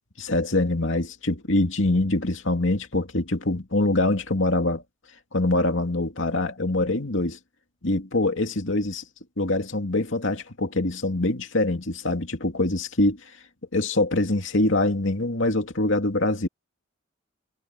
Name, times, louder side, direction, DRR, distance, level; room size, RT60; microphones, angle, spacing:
voice 1, 0.2-4.8 5.3-7.4 7.8-9.0 9.4-13.3 13.7-16.5, left 2 dB, 65° left, 2.5 m, -24 dB
head